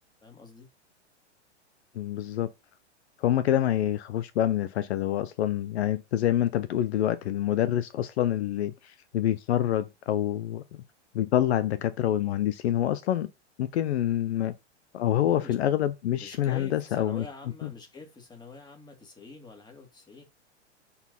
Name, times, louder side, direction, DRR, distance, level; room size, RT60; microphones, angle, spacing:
voice 1, 0.2-0.7 15.1-15.9 16.2-20.2, left 4 dB, 10° left, 2.5 m, -45 dB
voice 2, 1.9-2.5 3.2-10.8 11.1-13.3 13.6-14.5 14.9-17.2, left 11 dB, 65° left, 0.9 m, -26 dB
7.1 x 4.3 x 5.5 m
hypercardioid pair, 125°, 35 cm